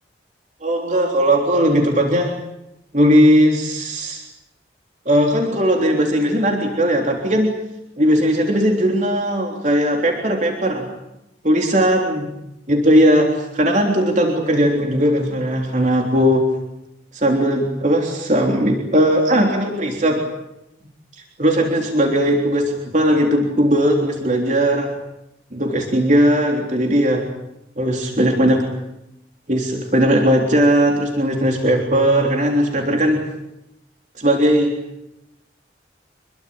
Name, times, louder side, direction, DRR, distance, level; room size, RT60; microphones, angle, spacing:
voice 1, 0.6-2.4 2.9-4.3 5.1-7.6 8.0-10.9 11.4-12.3 12.7-16.5 17.1-20.2 21.4-24.9 25.5-27.3 27.8-28.7 29.5-33.3 34.2-34.7, equal, 40° right, 1 dB, 3.6 m, -18 dB
27.0 x 22.0 x 8.8 m, 0.89 s
head